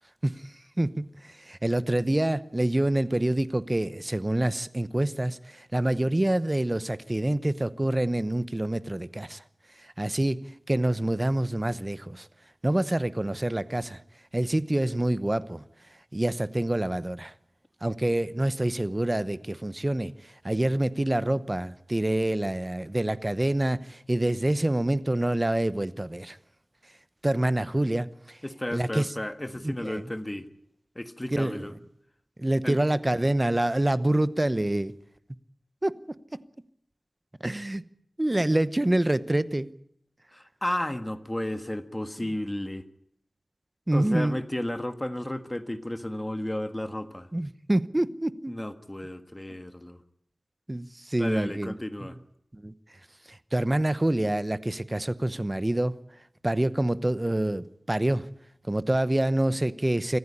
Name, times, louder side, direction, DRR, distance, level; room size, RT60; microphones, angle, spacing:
voice 1, 0.2-9.4 9.8-10.4 10.7-12.3 12.6-14.0 14.3-15.6 16.1-17.3 17.8-26.4 27.2-28.4 28.7-29.1 29.6-30.0 31.3-31.6 32.4-34.9 35.8-36.4 37.4-37.8 38.2-39.7 43.9-44.4 47.3-48.5 50.7-51.7 52.5-52.7 53.3-56.0 56.4-58.3 58.7-60.2, right 1 dB, 20° right, 15 dB, 0.9 m, -26 dB
voice 2, 28.4-30.5 30.9-31.7 32.6-32.8 40.3-42.8 43.9-47.3 48.5-50.0 51.1-52.2, left 1 dB, 15° left, 10 dB, 1.5 m, -33 dB
25.5 x 14.0 x 9.9 m, 0.72 s
wide cardioid pair, 70°, 0 cm